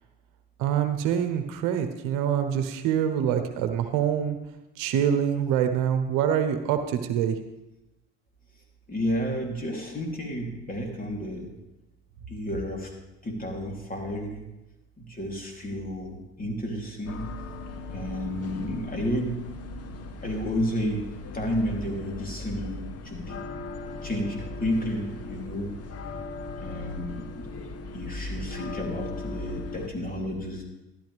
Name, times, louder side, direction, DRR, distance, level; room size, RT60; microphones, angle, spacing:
voice 1, 0.6-4.4 4.8-7.3, right 9 dB, 70° right, 8 dB, 1.1 m, -25 dB
voice 2, 8.9-11.5 12.3-12.9 13.2-14.4 15.0-17.2 17.9-19.4 20.2-21.1 21.3-23.4 24.0-25.7 26.6-27.5 27.9-30.7, equal, 25° left, 0 dB, 3.2 m, -31 dB
sound 1, 17.1-29.9, left 2 dB, 45° left, 1.2 m, -38 dB
13.0 x 11.5 x 3.4 m, 0.95 s
hypercardioid pair, 65°, 34 cm